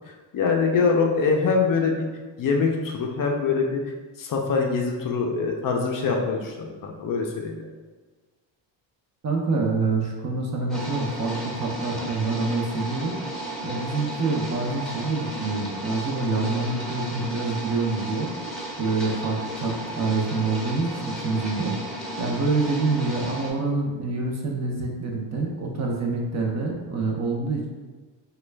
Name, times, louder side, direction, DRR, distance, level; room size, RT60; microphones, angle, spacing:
voice 1, 0.3-2.1 2.4-3.8 4.2-7.7, left 4 dB, 45° left, 1 dB, 0.5 m, -24 dB
voice 2, 9.2-13.1 13.6-18.5 18.8-27.7, right 3 dB, 35° right, 0 dB, 0.5 m, -26 dB
sound 1, 10.7-23.5, right 1 dB, ahead, 0.7 m, -34 dB
3.0 x 2.3 x 3.2 m, 1.3 s
cardioid pair, 115°, 47 cm